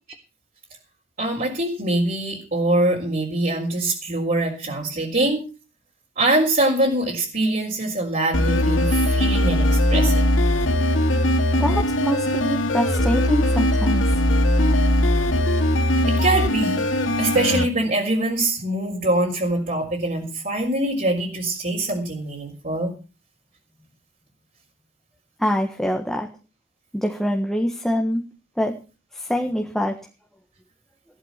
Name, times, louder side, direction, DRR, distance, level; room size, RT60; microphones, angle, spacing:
voice 1, 1.2-5.5 6.2-10.3 16.1-22.9, right 2 dB, 45° right, -3 dB, 4.5 m, -23 dB
sound 1, 8.3-17.6, left 1 dB, 85° left, 2.5 m, -20 dB
voice 2, 11.6-14.2 25.4-26.3 26.9-28.2 28.6-28.7 29.1-30.0, equal, ahead, 1 dB, 1.5 m, -24 dB
15.5 x 11.0 x 5.9 m, 0.34 s
head